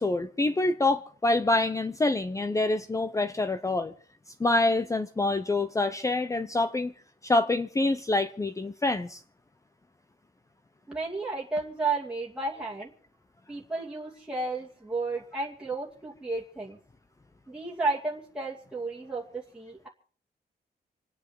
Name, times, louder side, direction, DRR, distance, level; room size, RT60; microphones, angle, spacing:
voice 1, 0.0-3.9 4.4-6.9 7.2-9.2, left 2 dB, 20° left, 0.7 m, -26 dB
voice 2, 10.9-12.9 13.5-16.8 17.5-19.9, right 3 dB, 5° right, 2.5 m, -32 dB
27.5 x 9.6 x 4.7 m
wide cardioid pair, 175°, 17 cm